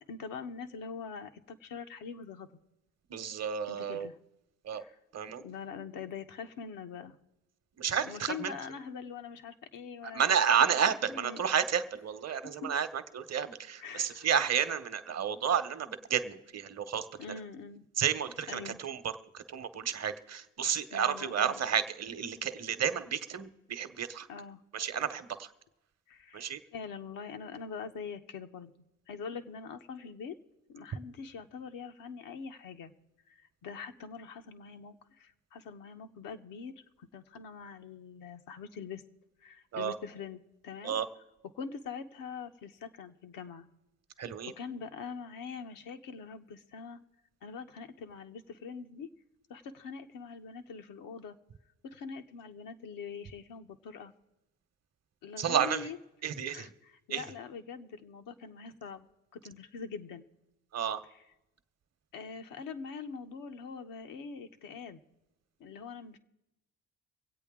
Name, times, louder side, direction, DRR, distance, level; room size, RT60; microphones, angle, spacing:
voice 1, 0.1-2.5 3.7-4.2 4.7-5.0 5.4-7.2 8.0-10.3 11.1-11.4 12.3-12.7 13.8-14.3 17.2-17.9 18.5-18.8 20.9-21.6 24.3-24.6 26.1-28.7 29.1-30.4 30.7-32.9 33.3-39.0 39.4-41.0 41.5-43.7 44.6-47.0 47.4-49.1 49.5-51.4 51.8-54.1 55.2-56.0 56.5-59.1 59.3-60.2 61.1-61.2 62.1-65.0 65.6-66.2, left 5 dB, 80° left, 6 dB, 0.9 m, -43 dB
voice 2, 3.1-4.1 4.6-4.8 5.1-5.4 7.8-8.5 10.1-12.9 13.1-17.0 18.0-24.3 24.7-25.5 26.3-26.6 39.7-39.9 40.8-41.1 44.2-44.5 55.4-55.9 56.2-56.7 57.1-57.2 60.7-61.0, right 8 dB, 50° right, 10 dB, 0.9 m, -31 dB
24.5 x 8.3 x 3.6 m, 0.95 s
supercardioid pair, 65°, 33 cm